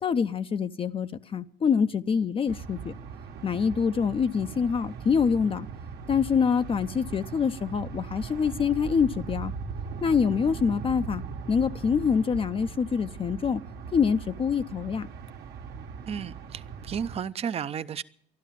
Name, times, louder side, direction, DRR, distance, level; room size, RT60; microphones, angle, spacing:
voice 1, 0.0-2.9 3.4-5.7 6.1-9.5 10.0-11.2 11.5-13.6 13.9-15.1, left 6 dB, 30° left, 0.5 m, -25 dB
sound 1, 2.5-17.2, right 5 dB, 70° right, 1.3 m, -39 dB
voice 2, 16.1-18.0, right 7 dB, 35° right, 0.5 m, -33 dB
13.0 x 11.5 x 7.5 m
cardioid pair, 110°, 17 cm